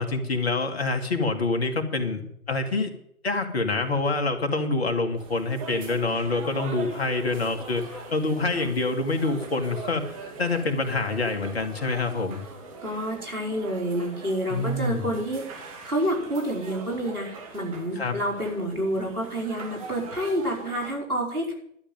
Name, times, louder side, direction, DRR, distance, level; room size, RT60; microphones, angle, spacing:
voice 1, 0.0-2.2 2.5-2.9 3.2-10.0 10.4-12.4 14.5-15.1 18.0-18.2, left 3 dB, 45° left, 6 dB, 2.1 m, -26 dB
sound 1, 5.2-21.0, right 4 dB, 25° right, 2.3 m, -41 dB
voice 2, 12.8-21.5, equal, 80° right, 0 dB, 5.0 m, -29 dB
12.0 x 6.8 x 9.1 m, 0.72 s
figure-of-eight pair, 140°, 44 cm